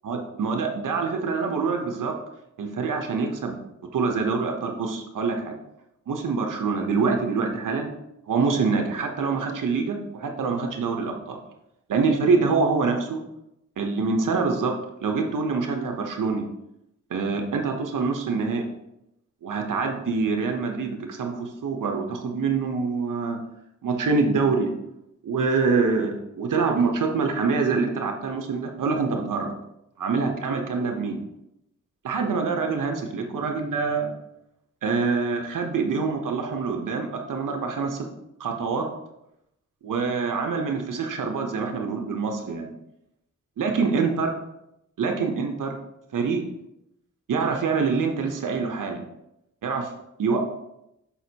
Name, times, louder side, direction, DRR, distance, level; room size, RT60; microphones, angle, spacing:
voice 1, 0.0-2.2 2.6-5.6 6.1-7.9 8.3-11.4 11.9-13.2 13.8-14.7 15.0-16.5 17.1-18.8 19.4-23.4 23.8-24.7 25.2-29.5 30.0-31.2 32.0-34.1 34.8-38.1 38.4-38.9 39.8-42.7 43.6-44.3 45.0-45.7 46.1-46.4 47.3-49.0 49.6-49.9 50.2-50.4, right 4 dB, 80° right, 3 dB, 0.8 m, -25 dB
6.0 x 5.8 x 2.8 m, 0.84 s
cardioid pair, 80°, 31 cm